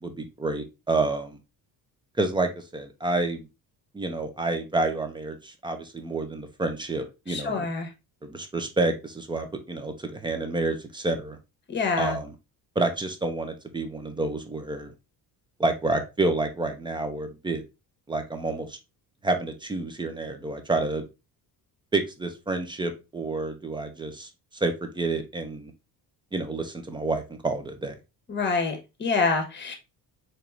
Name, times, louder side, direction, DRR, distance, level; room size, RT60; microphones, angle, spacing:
voice 1, 0.0-1.4 2.2-3.5 3.9-7.7 8.2-11.4 12.0-12.3 12.8-14.9 15.6-17.6 18.1-18.8 19.2-21.1 21.9-24.3 24.6-25.7 26.3-27.9, right 2 dB, 15° right, 6 dB, 0.3 m, -29 dB
voice 2, 7.3-7.9 11.7-12.2 28.3-29.7, left 4 dB, 25° left, 5 dB, 0.9 m, -26 dB
4.3 x 3.1 x 2.4 m, 0.26 s
cardioid pair, 145°, 40 cm